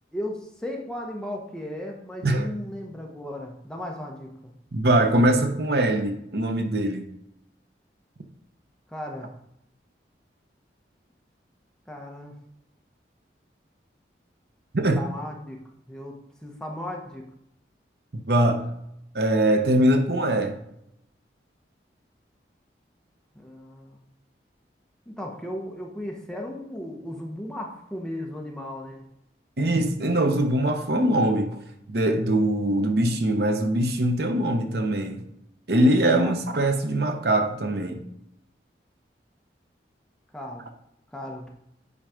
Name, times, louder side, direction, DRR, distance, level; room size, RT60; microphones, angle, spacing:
voice 1, 0.1-4.5 8.9-9.3 11.9-12.4 14.9-15.6 15.9-17.2 23.3-24.0 25.1-29.1 36.2-36.4 40.3-40.7 41.1-41.4, left 1 dB, 5° left, 0 dB, 1.0 m, -36 dB
voice 2, 2.2-2.6 4.7-7.1 14.7-15.0 18.3-18.6 19.1-20.6 29.6-31.6 31.9-35.2 35.7-38.0, right 1 dB, 65° right, 6 dB, 0.8 m, -22 dB
8.8 x 4.0 x 5.0 m, 0.78 s
head